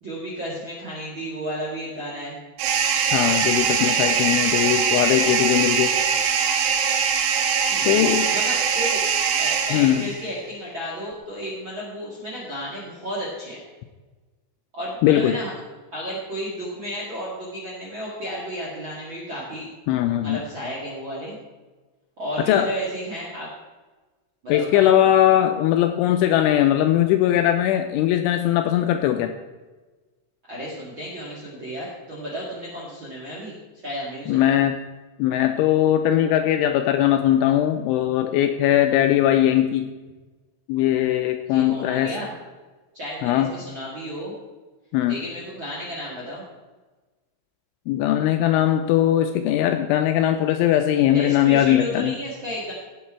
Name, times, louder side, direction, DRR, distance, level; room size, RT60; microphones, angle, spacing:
voice 1, 0.0-2.4 7.7-9.0 9.4-13.6 14.7-15.5 15.9-19.7 20.2-21.4 22.2-23.5 24.4-24.9 30.5-33.6 33.8-34.6 41.5-42.3 42.9-44.3 45.1-46.4 51.1-52.7, equal, 45° right, -5 dB, 1.7 m, -33 dB
sound 1, 2.6-10.3, right 7 dB, 75° right, 3.3 m, -22 dB
voice 2, 3.1-5.9 7.9-8.3 9.7-10.0 15.0-15.4 19.9-20.4 22.5-22.7 24.5-29.3 34.3-34.8 35.2-39.9 40.7-42.1 43.2-43.5 44.9-45.2 47.9-52.1, left 12 dB, 85° left, 6 dB, 2.8 m, -20 dB
16.5 x 7.4 x 4.4 m, 1.2 s
omnidirectional pair, 5.9 m